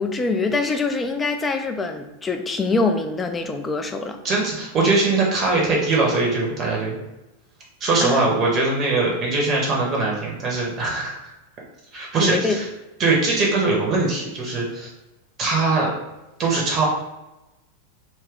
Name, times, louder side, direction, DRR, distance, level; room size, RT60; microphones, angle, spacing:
voice 1, 0.0-4.2 8.0-8.3 12.2-12.6, left 3 dB, 15° left, 6 dB, 0.3 m, -24 dB
voice 2, 4.2-7.0 7.8-11.1 11.9-12.6 13.0-14.9 15.4-15.9 16.4-16.9, right 3 dB, 30° right, -2 dB, 0.7 m, -21 dB
2.6 x 2.3 x 3.5 m, 0.98 s
figure-of-eight pair, 90°, 0 cm